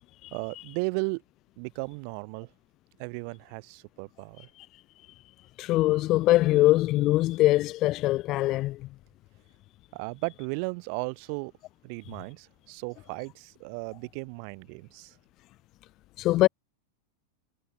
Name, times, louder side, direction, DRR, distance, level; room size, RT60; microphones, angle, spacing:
voice 1, 0.3-1.2 1.6-2.5 3.0-4.5 9.9-11.5 11.8-15.1, right 40 dB or more, 45° right, 3.1 m, -35 dB
voice 2, 5.6-8.8 16.2-16.5, left 17 dB, 35° left, 0.4 m, -22 dB
figure-of-eight pair, 90°, 0 cm